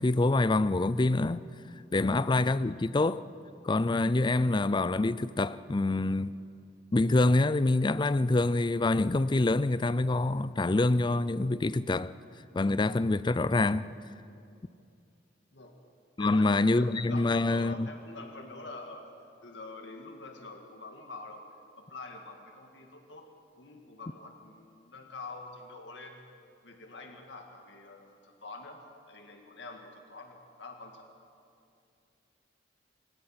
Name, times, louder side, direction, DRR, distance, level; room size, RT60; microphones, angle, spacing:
voice 1, 0.0-1.4 1.9-3.2 3.6-6.3 6.9-12.1 12.5-13.9 16.2-17.9, left 2 dB, 25° left, 0.4 m, -26 dB
voice 2, 16.7-19.1 19.4-21.4 21.8-23.3 23.6-26.3 26.6-31.1, left 3 dB, 75° left, 1.9 m, -46 dB
25.5 x 21.0 x 5.9 m
head